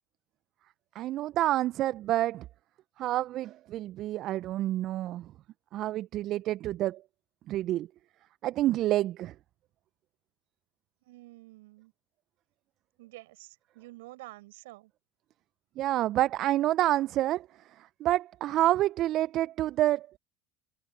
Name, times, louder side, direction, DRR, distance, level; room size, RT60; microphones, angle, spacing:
voice 1, 0.9-2.4 3.0-5.3 5.7-7.0 7.5-7.9 8.4-9.3 15.8-17.5 18.0-20.2, right 14 dB, 55° right, 1.1 m, -28 dB
voice 2, 11.1-11.9 13.0-14.9, right 20 dB, 70° right, 6.4 m, -49 dB
hypercardioid pair, 65°, 0 cm